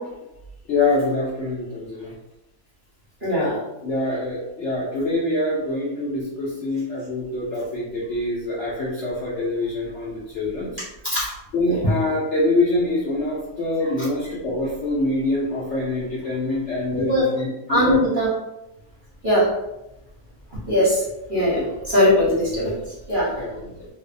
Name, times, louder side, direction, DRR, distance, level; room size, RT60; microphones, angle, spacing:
voice 1, 0.7-2.1 3.8-10.8 11.5-18.0 21.5-21.7 23.4-23.5, left 2 dB, 65° left, -6 dB, 0.7 m, -25 dB
voice 2, 3.2-3.6 11.0-11.3 11.7-11.8 16.9-17.3 17.7-18.3 19.2-19.5 20.5-21.0 21.3-22.7 23.1-23.3, left 1 dB, 45° right, -9 dB, 0.7 m, -20 dB
2.6 x 2.0 x 2.5 m, 0.93 s
omnidirectional pair, 1.7 m